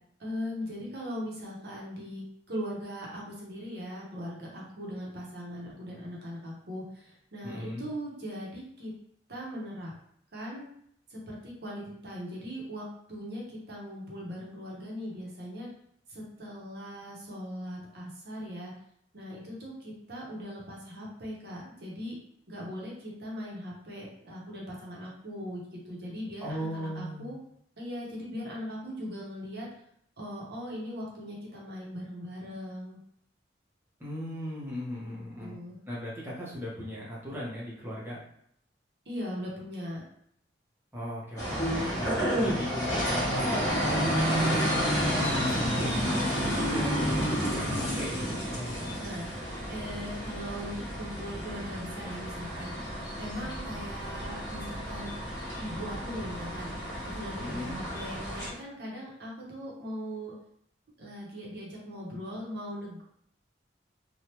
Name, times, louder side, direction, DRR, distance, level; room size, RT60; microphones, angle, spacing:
voice 1, 0.2-8.9 9.3-9.9 10.3-10.7 11.1-15.7 16.1-18.7 19.1-22.2 22.5-27.4 27.8-29.7 30.2-33.0 35.0-35.1 35.4-35.8 39.1-40.0 49.0-52.9 53.2-55.1 55.6-56.7 57.1-60.3 61.0-63.0, equal, 60° right, -4 dB, 0.9 m, -39 dB
voice 2, 7.4-7.9 26.4-27.4 34.0-35.6 35.9-38.2 40.9-44.9 45.3-48.3 57.4-57.8, equal, 10° right, -6 dB, 0.9 m, -38 dB
sound 1, 41.4-58.5, equal, 15° left, 1.3 m, -30 dB
3.3 x 2.3 x 2.9 m, 0.70 s
head